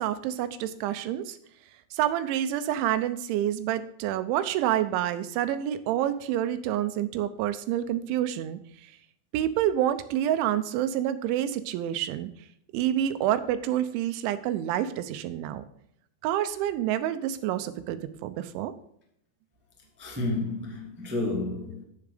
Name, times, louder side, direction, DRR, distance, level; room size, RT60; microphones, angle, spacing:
voice 1, 0.0-1.4 1.9-8.9 9.3-12.3 12.7-15.6 16.2-18.7, right 11 dB, 80° right, 3.1 m, -28 dB
voice 2, 20.0-21.8, left 2 dB, 10° right, 0.7 m, -31 dB
11.0 x 7.1 x 5.0 m
omnidirectional pair, 5.5 m